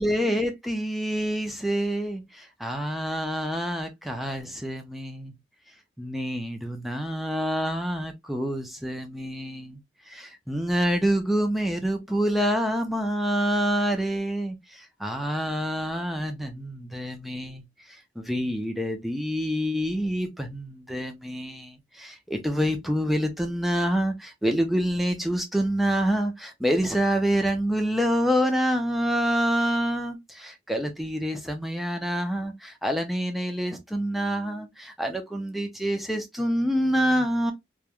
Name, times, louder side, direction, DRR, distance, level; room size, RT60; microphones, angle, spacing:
voice 1, 0.0-5.3 6.0-9.8 10.1-37.5, equal, ahead, 0.4 m, -27 dB
3.1 x 2.3 x 2.3 m
head